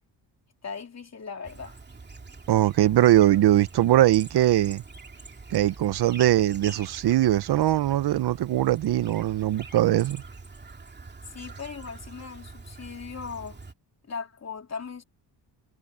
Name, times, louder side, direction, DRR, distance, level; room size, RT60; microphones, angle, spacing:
voice 1, 0.6-1.8 11.2-13.6 14.1-15.0, left 5 dB, 40° left, 3.2 m, -38 dB
Chirp tweet, 1.4-13.7, right 3 dB, 25° right, 2.7 m, -45 dB
voice 2, 2.5-4.8 5.5-10.2, right 13 dB, 65° right, 0.8 m, -21 dB
cardioid pair, 100°, 42 cm